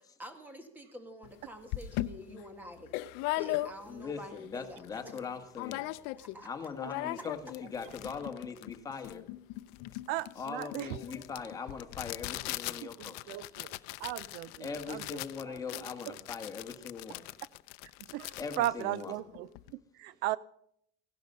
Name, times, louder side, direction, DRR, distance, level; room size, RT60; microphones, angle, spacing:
voice 1, 0.0-4.8 6.2-6.5, equal, 10° right, 1.8 m, -48 dB
sound 1, 1.2-1.3 1.7-4.1 4.5-4.6 4.8-5.2 5.5-6.4 6.6-19.7, left 18 dB, 80° left, 0.6 m, -39 dB
voice 2, 3.9-5.8 6.4-9.2 10.3-13.4 14.6-17.2 18.4-19.1, left 5 dB, 20° left, 1.6 m, -41 dB
voice 3, 6.8-7.2 10.1-11.0 13.1-13.7 14.0-15.2 15.5-16.2 18.1-20.4, right 15 dB, 70° right, 0.5 m, -37 dB
16.0 x 11.5 x 5.4 m
cardioid pair, 150°, 17 cm